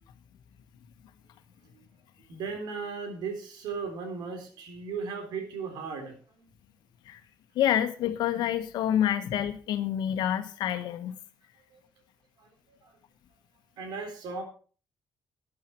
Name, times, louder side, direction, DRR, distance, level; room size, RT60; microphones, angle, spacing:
voice 1, 2.3-6.2 11.7-11.8 12.4-12.9 13.8-14.4, right 5 dB, 90° right, 4 dB, 3.8 m, -36 dB
voice 2, 7.5-11.2, left 10 dB, 90° left, 10 dB, 1.3 m, -27 dB
12.5 x 10.5 x 4.5 m, 0.40 s
cardioid pair, 125°, 7 cm